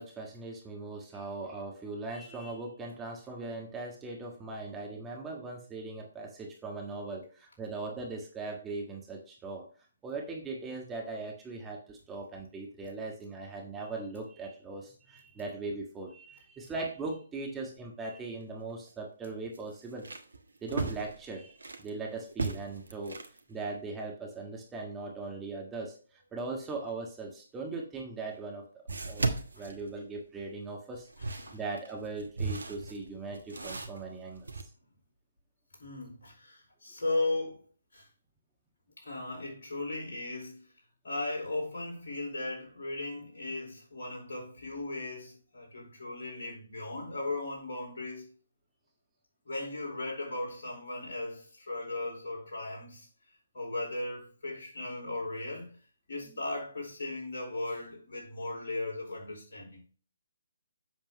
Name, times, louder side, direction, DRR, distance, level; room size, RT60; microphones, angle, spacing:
voice 1, 0.0-9.6 10.0-20.1 20.6-23.2 23.5-34.7, right 3 dB, 10° right, 1.5 m, -40 dB
sound 1, 18.4-18.5 18.9-19.0 19.5-21.9 22.3-23.4 27.7-27.8 28.9-30.4 30.9-34.6, right 3 dB, 70° right, 1.3 m, -37 dB
voice 2, 35.8-37.6 37.9-38.1 39.0-40.7 41.0-48.3 49.4-53.1 53.5-55.7 56.1-59.8, left 2 dB, 55° left, 4.7 m, -37 dB
7.8 x 7.1 x 3.1 m
figure-of-eight pair, 135°, 0 cm